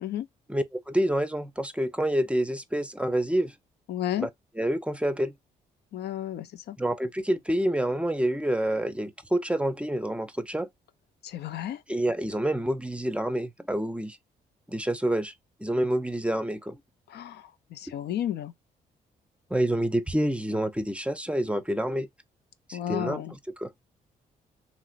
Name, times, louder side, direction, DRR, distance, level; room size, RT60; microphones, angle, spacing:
voice 1, 0.5-3.5 4.2-4.3 4.6-5.3 6.8-10.7 11.9-14.2 14.7-15.3 15.6-16.8 19.5-22.1 22.7-23.2 23.6-23.7, right 1 dB, 5° right, 0.5 m, -27 dB
voice 2, 3.9-4.3 5.9-6.8 11.2-11.8 17.1-18.5 22.7-23.3, left 11 dB, 65° left, 0.4 m, -32 dB
3.0 x 2.7 x 2.4 m
supercardioid pair, 50°, 18 cm